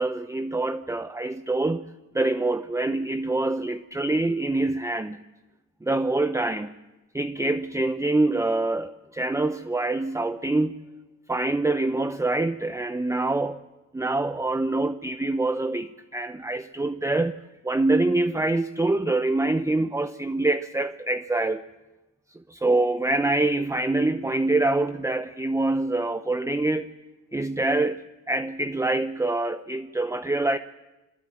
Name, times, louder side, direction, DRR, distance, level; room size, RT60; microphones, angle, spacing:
voice 1, 0.0-1.9 2.1-5.2 5.8-6.7 7.1-10.8 11.3-13.6 13.9-17.4 17.6-21.6 22.5-26.9 27.3-30.6, right 2 dB, 10° right, 0.9 m, -25 dB
25.0 x 20.5 x 8.8 m
cardioid pair, 90°, 30 cm